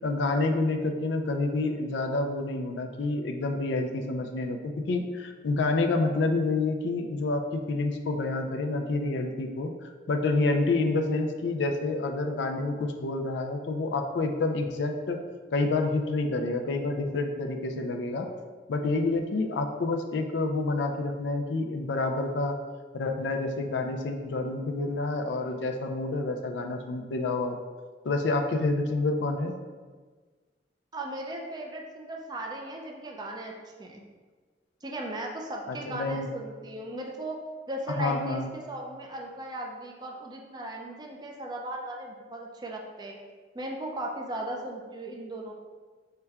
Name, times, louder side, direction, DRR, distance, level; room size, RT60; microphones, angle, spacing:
voice 1, 0.0-9.7 10.1-15.2 15.5-18.3 18.7-22.6 22.9-27.6 28.0-29.5 35.7-36.3 38.0-38.5, left 3 dB, 90° left, 4 dB, 0.4 m, -28 dB
voice 2, 30.9-33.5 33.8-34.0 34.8-37.4 37.7-43.2 43.5-45.5, right 1 dB, 25° right, 0 dB, 0.4 m, -37 dB
5.6 x 2.2 x 3.5 m, 1.4 s
head